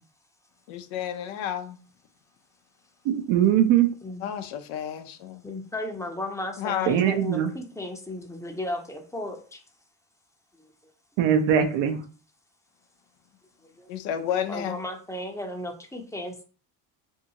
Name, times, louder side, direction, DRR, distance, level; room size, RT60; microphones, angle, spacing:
voice 1, 0.7-1.8 4.2-5.4 6.6-7.0 13.9-14.8, left 9 dB, 75° left, 0.6 m, -31 dB
voice 2, 3.0-3.9 6.9-7.5 11.2-12.0, right 9 dB, 65° right, 0.7 m, -21 dB
voice 3, 5.4-9.6 10.6-10.7 13.6-13.9 14.5-16.4, left 1 dB, 5° left, 0.6 m, -35 dB
2.7 x 2.5 x 2.8 m
supercardioid pair, 70°, 48 cm